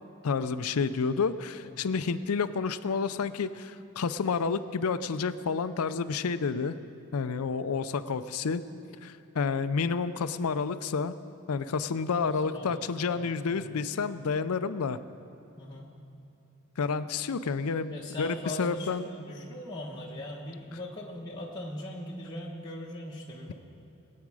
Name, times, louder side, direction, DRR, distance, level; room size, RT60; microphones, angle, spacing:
voice 1, 0.2-6.8 7.1-8.6 9.0-11.1 11.5-15.0 16.8-19.0, left 5 dB, 85° left, 13 dB, 0.5 m, -30 dB
voice 2, 12.2-13.8 15.6-15.9 17.9-23.5, left 1 dB, 20° left, -5 dB, 1.1 m, -40 dB
22.0 x 8.6 x 4.8 m, 2.8 s
head